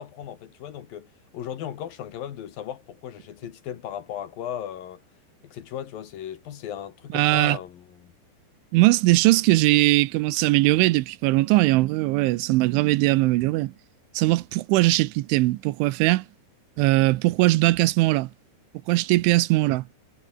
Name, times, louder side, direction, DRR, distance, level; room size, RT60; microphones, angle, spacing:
voice 1, 0.0-5.0 5.4-8.1, left 10 dB, 60° left, 3.2 m, -36 dB
voice 2, 7.1-7.6 8.7-13.7 14.1-16.2 16.8-18.3 18.9-19.8, right 19 dB, 85° right, 3.3 m, -20 dB
omnidirectional pair, 5.4 m